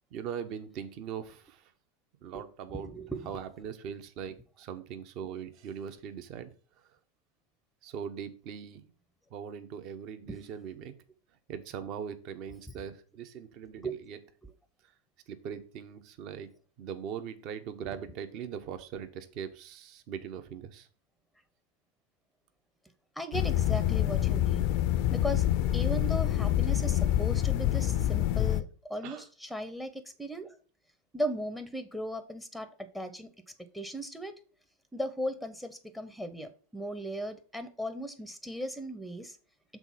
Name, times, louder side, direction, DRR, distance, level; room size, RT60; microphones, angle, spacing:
voice 1, 0.1-1.7 2.2-2.9 3.3-6.5 7.8-8.9 9.3-10.9 11.5-14.2 15.3-16.5 16.8-20.9 29.0-29.3, right 8 dB, 45° right, 10 dB, 0.9 m, -40 dB
voice 2, 2.7-3.3 10.3-10.4 13.8-14.0 23.2-24.7 25.1-25.4 25.7-30.5 31.1-32.7 32.9-33.3 33.7-34.4 34.9-39.4, equal, ahead, 10 dB, 0.7 m, -37 dB
sound 1, 23.3-28.6, left 12 dB, 45° left, 0.5 m, -26 dB
6.1 x 4.0 x 5.4 m, 0.39 s
figure-of-eight pair, 90°, 0 cm